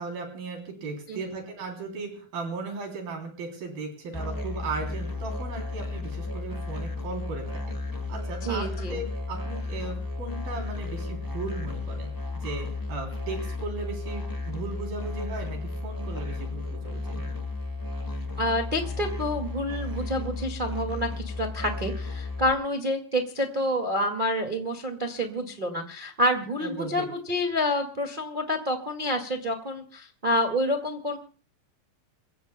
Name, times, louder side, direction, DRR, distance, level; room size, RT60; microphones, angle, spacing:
voice 1, 0.0-7.8 8.1-12.1 12.4-17.2 26.6-27.1, right 3 dB, 75° right, 2 dB, 5.2 m, -36 dB
Musical instrument, 4.1-22.5, left 3 dB, 10° left, 0.9 m, -34 dB
voice 2, 8.4-9.0 18.4-31.2, equal, 25° right, 3 dB, 1.2 m, -28 dB
28.5 x 16.5 x 2.2 m, 0.40 s
omnidirectional pair, 4.3 m